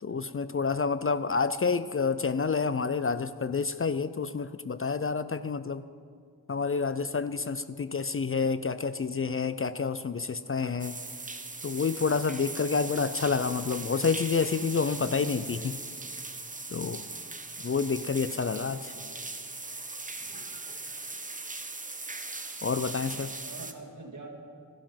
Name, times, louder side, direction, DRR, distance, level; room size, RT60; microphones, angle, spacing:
voice 1, 0.0-5.8 6.5-11.0 11.6-15.8 16.7-17.0 17.6-18.9 22.6-23.3, left 5 dB, 40° left, 13 dB, 0.4 m, -29 dB
sound 1, 10.8-23.7, right 3 dB, 20° right, 0.8 m, -39 dB
voice 2, 18.3-19.0 20.2-20.8 23.1-24.3, right 3 dB, 55° right, 1 dB, 2.1 m, -48 dB
14.0 x 11.5 x 5.8 m, 2.2 s
wide cardioid pair, 95°, 36 cm